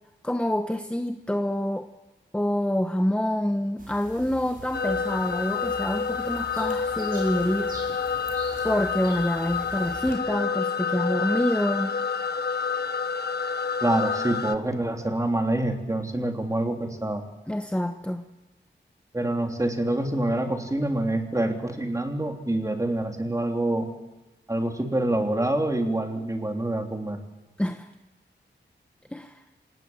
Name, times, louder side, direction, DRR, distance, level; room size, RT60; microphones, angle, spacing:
voice 1, 0.2-1.9 2.3-7.7 8.6-11.9 17.5-18.2 27.6-27.9 29.1-29.4, left 1 dB, 5° left, 6 dB, 1.2 m, -27 dB
sound 1, 3.8-10.1, right 2 dB, 50° right, 6.4 m, -43 dB
sound 2, 4.7-14.6, left 5 dB, 55° left, 1.3 m, -28 dB
voice 2, 13.8-17.2 19.1-23.9 24.5-27.2, right 1 dB, 15° right, 3 dB, 3.5 m, -26 dB
27.0 x 19.0 x 7.4 m, 1.1 s
wide cardioid pair, 95°, 19 cm